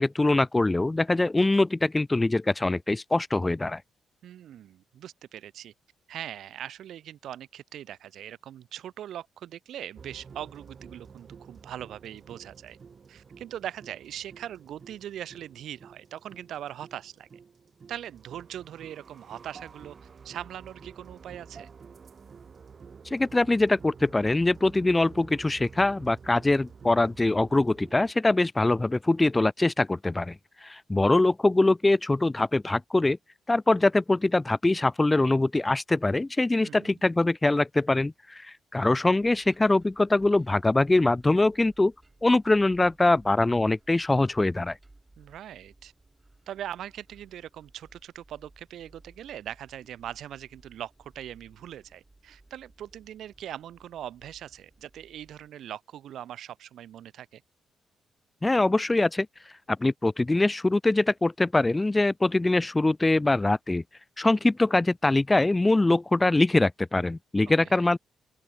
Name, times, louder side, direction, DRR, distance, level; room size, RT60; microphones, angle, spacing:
voice 1, 0.0-3.8 23.1-30.4 30.6-33.2 33.5-41.9 42.2-44.8 58.4-59.3 59.8-63.8 64.2-68.0, left 2 dB, 20° left, 0.4 m, -23 dB
voice 2, 4.2-5.7 6.1-12.8 13.1-17.3 17.9-20.0 20.2-21.7 36.6-36.9 45.2-45.9 46.5-57.4 67.5-67.9, right 11 dB, 70° right, 2.0 m, -41 dB
sound 1, 10.0-28.1, right 6 dB, 50° right, 4.1 m, -50 dB
sound 2, 39.2-55.5, right 2 dB, 20° right, 4.9 m, -59 dB
open air
hypercardioid pair, 45°, 0 cm